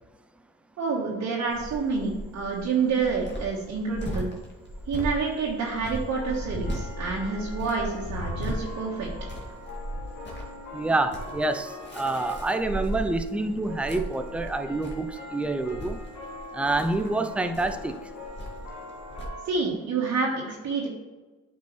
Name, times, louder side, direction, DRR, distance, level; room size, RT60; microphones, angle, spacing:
voice 1, 0.8-4.3 4.9-9.1 19.4-20.9, right 4 dB, 60° right, -5 dB, 1.7 m, -28 dB
Cricket, 1.5-19.3, equal, 35° left, 2.3 m, -37 dB
sound 1, 4.6-5.5 6.2-19.4, left 2 dB, 90° left, 2.1 m, -43 dB
voice 2, 10.7-16.0 16.5-18.0, right 2 dB, 5° right, 7 dB, 0.5 m, -27 dB
8.5 x 5.4 x 3.3 m, 1.2 s
cardioid pair, 90°, 30 cm